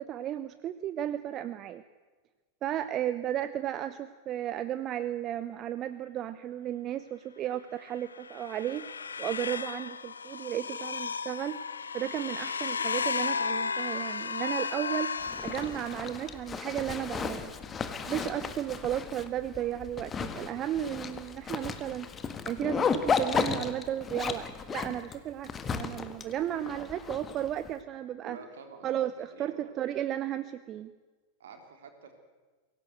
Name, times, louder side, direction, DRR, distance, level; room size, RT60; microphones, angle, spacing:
voice 1, 0.0-1.8 2.6-8.8 9.2-11.6 11.9-15.1 15.4-17.5 18.1-22.1 22.5-28.4 28.8-30.9, right 11 dB, 30° right, 13 dB, 0.8 m, -34 dB
sound 1, 8.0-16.3, left 5 dB, 75° left, 0.7 m, -34 dB
Zipper (clothing), 15.2-27.7, left 6 dB, 20° left, 1.6 m, -34 dB
voice 2, 28.2-29.7 31.4-32.1, right 5 dB, 60° right, 5 dB, 3.4 m, -49 dB
23.5 x 17.0 x 8.0 m, 1.3 s
figure-of-eight pair, 90°, 0 cm